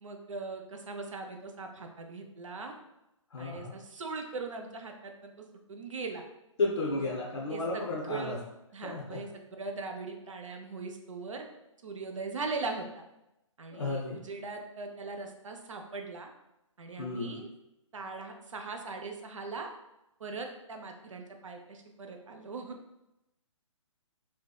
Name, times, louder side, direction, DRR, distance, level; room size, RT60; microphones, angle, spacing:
voice 1, 0.0-2.7 3.4-6.2 6.8-7.1 7.5-8.4 8.7-11.4 11.8-13.0 13.6-16.3 16.8-17.5 17.9-19.7 20.2-22.8, right 3 dB, 70° right, 4 dB, 0.4 m, -40 dB
voice 2, 3.3-3.7 6.6-8.4 8.8-9.2 13.7-14.2 17.0-17.4, left 3 dB, 60° left, -3 dB, 0.5 m, -33 dB
2.6 x 2.2 x 2.2 m, 0.89 s
figure-of-eight pair, 130°, 17 cm